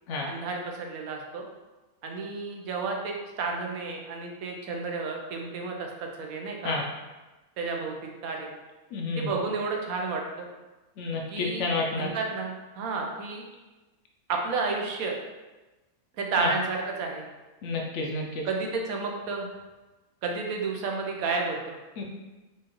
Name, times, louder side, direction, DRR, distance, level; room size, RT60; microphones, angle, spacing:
voice 1, 0.2-1.4 2.0-6.8 7.6-8.0 8.2-8.5 9.2-10.5 11.3-13.5 14.3-15.1 16.2-17.2 18.4-19.5 20.2-21.8, right 4 dB, 85° right, 1 dB, 1.1 m, -31 dB
voice 2, 8.9-9.3 11.0-12.1 16.4-16.5 17.6-18.5 22.0-22.1, left 3 dB, 65° left, 0 dB, 0.8 m, -30 dB
4.5 x 2.5 x 2.9 m, 1.2 s
omnidirectional pair, 1.5 m